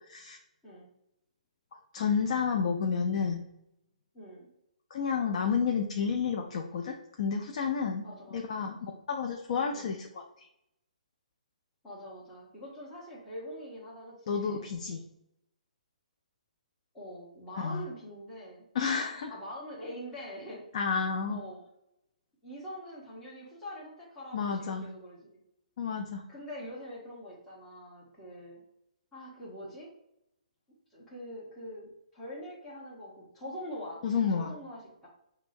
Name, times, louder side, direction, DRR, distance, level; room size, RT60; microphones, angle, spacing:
voice 1, 1.7-3.4 4.9-8.1 8.3-10.5 14.3-15.0 17.6-17.8 18.7-19.3 20.7-21.4 24.3-24.8 25.8-26.2 34.0-34.5, left 6 dB, 50° left, 2 dB, 0.4 m, -31 dB
voice 2, 4.1-4.5 8.0-8.5 9.7-9.9 11.8-14.7 16.9-18.6 19.3-20.6 21.3-21.6 22.4-25.4 26.3-28.6 29.1-29.9 30.9-34.0 34.3-35.1, equal, 10° left, -8 dB, 1.2 m, -44 dB
6.0 x 2.0 x 2.6 m, 0.81 s
figure-of-eight pair, 135°, 4 cm